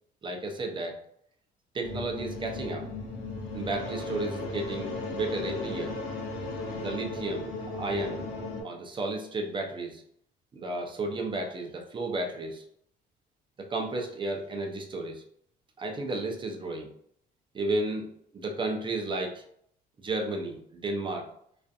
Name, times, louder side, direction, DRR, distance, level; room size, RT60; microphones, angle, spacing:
voice 1, 0.2-1.1 1.7-2.9 3.5-6.0 6.7-8.2 8.6-10.0 10.5-12.6 13.6-15.2 15.8-16.9 17.5-19.4 20.0-21.3, right 2 dB, 30° right, 2 dB, 0.5 m, -33 dB
sound 1, 1.8-8.6, left 3 dB, 75° left, 0.7 m, -36 dB
2.5 x 2.4 x 2.3 m, 0.67 s
cardioid pair, 110°, 17 cm